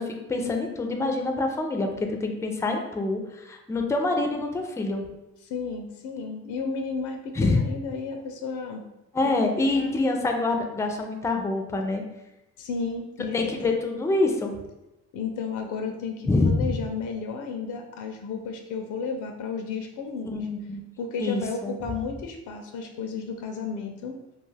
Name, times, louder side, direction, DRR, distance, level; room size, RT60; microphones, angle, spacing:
voice 1, 0.0-5.0 7.3-7.6 9.1-12.0 13.3-14.6 16.3-16.7 20.3-20.8 21.2-21.8, left 2 dB, 10° left, 3 dB, 0.3 m, -26 dB
voice 2, 5.4-8.8 9.2-10.0 12.6-13.5 15.1-20.5 21.0-24.2, left 5 dB, 75° left, 4 dB, 0.4 m, -33 dB
2.4 x 2.3 x 3.2 m, 0.93 s
cardioid pair, 90°, 30 cm